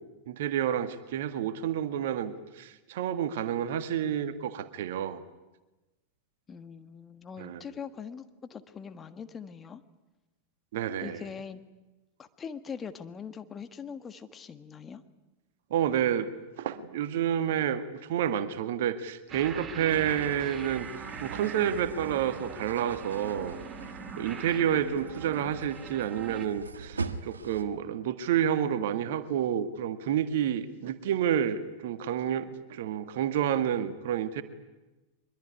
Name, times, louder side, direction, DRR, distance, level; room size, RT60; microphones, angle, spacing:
voice 1, 0.3-5.2 7.4-7.6 10.7-11.2 15.7-17.8 18.1-20.9 21.2-23.6 24.1-34.4, right 9 dB, 55° right, 11 dB, 1.7 m, -29 dB
voice 2, 6.5-9.8 11.0-11.6 12.2-15.0 24.5-24.9, left 6 dB, 20° left, 10 dB, 1.5 m, -42 dB
sound 1, 19.3-26.5, right 5 dB, 25° right, 2.0 m, -42 dB
sound 2, 19.9-27.6, right 4 dB, 75° right, 1.4 m, -42 dB
23.5 x 22.0 x 9.6 m, 1.1 s
figure-of-eight pair, 90°, 0 cm